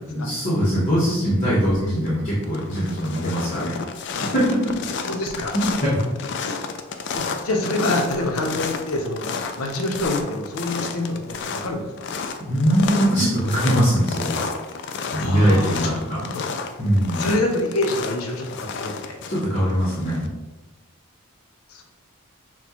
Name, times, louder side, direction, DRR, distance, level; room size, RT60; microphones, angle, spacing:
voice 1, 0.0-3.7 4.2-4.4 5.5-5.9 12.4-14.4 15.1-16.2 16.8-17.2 19.3-20.3, equal, 35° left, -8 dB, 1.0 m, -21 dB
sound 1, 1.7-2.1 2.4-20.3, left 5 dB, 50° left, 0.3 m, -31 dB
voice 2, 5.0-5.6 6.4-6.6 7.1-9.3 9.5-12.1 15.2-16.5 17.1-19.2 21.7-21.8, left 2 dB, 85° left, 2 dB, 0.7 m, -26 dB
6.0 x 2.2 x 2.9 m, 1.1 s
head